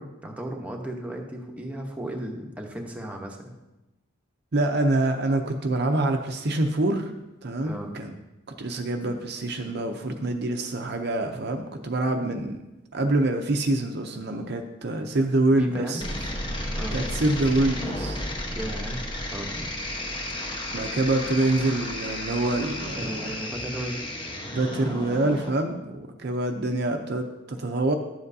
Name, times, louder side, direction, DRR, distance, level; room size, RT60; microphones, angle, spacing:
voice 1, 0.0-3.4 7.6-8.0 15.5-16.1 16.7-17.0 18.5-19.0 19.3-19.7 22.9-24.1, right 1 dB, 5° right, 0 dB, 0.9 m, -35 dB
voice 2, 4.5-7.1 7.4-8.1 8.6-12.6 12.9-16.0 16.9-18.2 20.7-23.1 24.5-27.9, right 2 dB, 50° right, 5 dB, 0.6 m, -26 dB
sound 1, 16.0-25.5, left 1 dB, 25° left, 1.1 m, -33 dB
11.5 x 7.7 x 2.7 m, 0.98 s
head